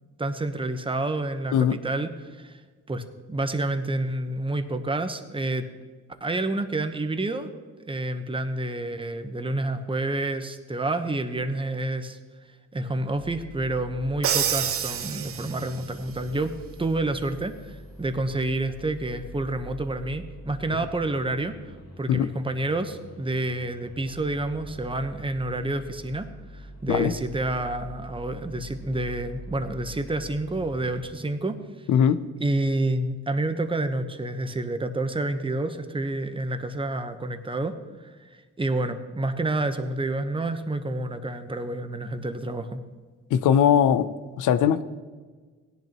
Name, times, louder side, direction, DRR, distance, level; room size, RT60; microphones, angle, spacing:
voice 1, 0.2-2.6 2.9-5.7 6.2-7.5 7.9-12.2 12.7-16.5 16.8-21.6 22.0-26.3 26.5-31.6 32.4-42.8, right 2 dB, 15° right, 8 dB, 1.0 m, -29 dB
sound 1, 13.1-31.1, equal, 55° left, 2.4 m, -45 dB
Crash cymbal, 14.2-15.9, right 8 dB, 50° right, 0.6 m, -27 dB
voice 2, 31.9-32.2 43.3-44.8, left 8 dB, 80° left, 13 dB, 0.7 m, -20 dB
17.0 x 10.5 x 3.0 m, 1.4 s
cardioid pair, 75°, 30 cm